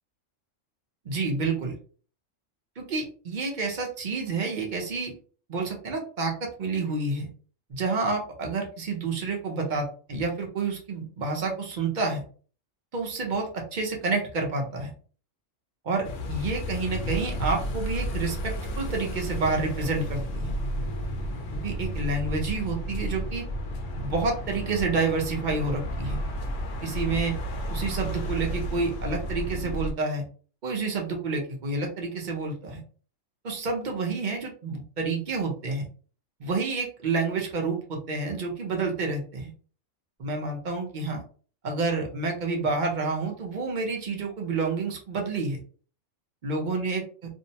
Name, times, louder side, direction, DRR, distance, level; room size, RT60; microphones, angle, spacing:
voice 1, 1.1-1.7 2.8-5.1 5.5-7.3 7.7-12.2 12.9-14.9 15.8-20.5 21.6-23.4 24.0-26.2 26.8-27.3 27.7-30.2 30.6-32.8 33.4-35.9 36.4-39.5 40.2-41.2 41.6-45.6 46.4-47.0, right 3 dB, 50° right, 1 dB, 0.6 m, -29 dB
sound 1, 16.0-29.9, equal, 75° left, 0.9 m, -32 dB
2.6 x 2.0 x 2.7 m, 0.41 s
omnidirectional pair, 1.3 m